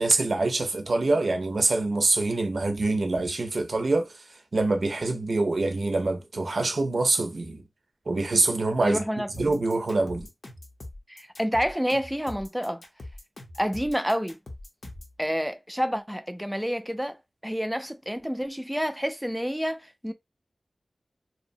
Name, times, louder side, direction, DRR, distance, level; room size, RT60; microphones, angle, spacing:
voice 1, 0.0-4.1 4.5-7.6 8.1-9.0 9.4-10.3, right 2 dB, 75° right, 0.5 m, -25 dB
voice 2, 8.8-9.6 11.1-12.8 13.6-14.4 15.2-17.2 17.4-20.1, equal, 5° right, 0.4 m, -29 dB
sound 1, 9.3-15.2, left 2 dB, 65° left, 0.7 m, -42 dB
2.7 x 2.0 x 2.6 m
wide cardioid pair, 70°, 0 cm